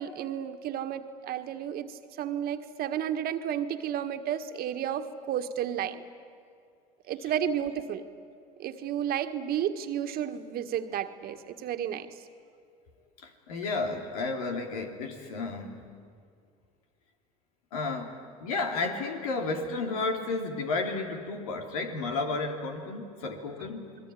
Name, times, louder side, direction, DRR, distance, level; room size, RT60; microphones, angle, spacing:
voice 1, 0.0-6.0 7.1-8.1 8.6-12.1, right 9 dB, 55° right, 8 dB, 1.7 m, -32 dB
voice 2, 13.2-15.8 17.7-24.0, left 3 dB, 85° left, 4 dB, 3.1 m, -32 dB
28.5 x 20.5 x 9.9 m, 2.2 s
hypercardioid pair, 75°, 18 cm